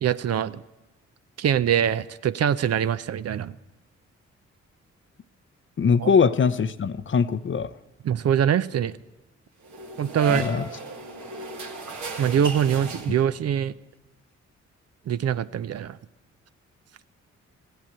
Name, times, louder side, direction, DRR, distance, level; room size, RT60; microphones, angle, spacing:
voice 1, 0.0-0.6 1.4-3.5 6.0-6.1 8.0-9.0 10.0-10.6 12.2-13.7 15.1-16.0, right 9 dB, 55° right, 14 dB, 0.5 m, -23 dB
voice 2, 5.8-7.7 10.3-10.6, left 6 dB, 40° left, 14 dB, 0.6 m, -22 dB
sound 1, 9.6-13.5, right 4 dB, 70° right, 1.7 m, -35 dB
15.0 x 8.0 x 8.6 m, 1.1 s
supercardioid pair, 50°, 31 cm